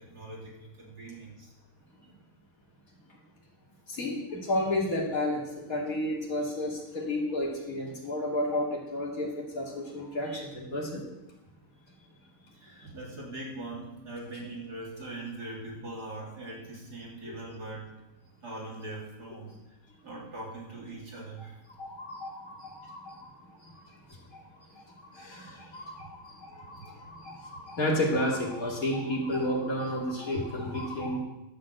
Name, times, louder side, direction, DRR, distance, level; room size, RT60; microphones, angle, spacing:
voice 1, 0.0-1.5 12.5-18.0 18.4-19.5 20.0-21.6 26.8-26.9, right 2 dB, 70° right, -4 dB, 4.2 m, -41 dB
voice 2, 3.9-11.0 17.2-17.4 21.8-23.8 24.1-24.2 24.6-31.2, left 1 dB, 55° left, -1 dB, 3.0 m, -32 dB
12.0 x 7.8 x 7.9 m, 0.97 s
omnidirectional pair, 1.7 m